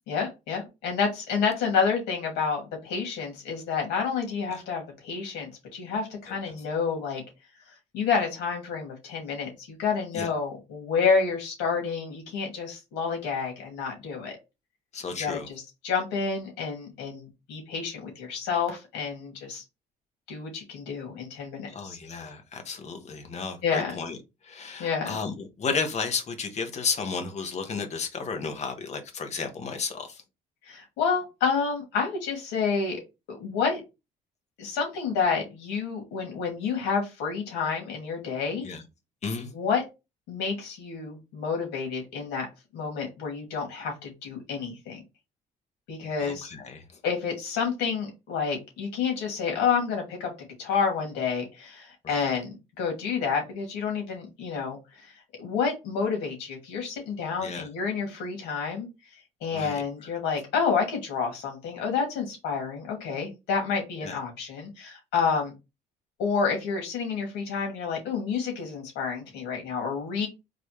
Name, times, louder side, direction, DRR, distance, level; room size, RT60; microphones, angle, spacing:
voice 1, 0.1-7.2 7.9-14.4 15.2-19.6 20.3-22.0 23.6-24.0 24.8-25.2 30.6-33.0 33.3-33.8 34.6-38.7 39.5-39.8 40.3-42.5 42.7-45.0 45.9-46.5 47.0-50.3 50.6-58.9 59.4-65.5 66.2-70.3, left 5 dB, 90° left, 2.3 m, -29 dB
voice 2, 14.9-15.5 21.7-24.2 24.4-30.2 38.6-38.9 39.2-39.5 46.2-47.0 52.0-52.3 57.4-57.7 59.5-59.8 64.0-64.1, left 5 dB, 40° left, 1.1 m, -33 dB
4.1 x 3.4 x 3.1 m
cardioid pair, 110°, 17 cm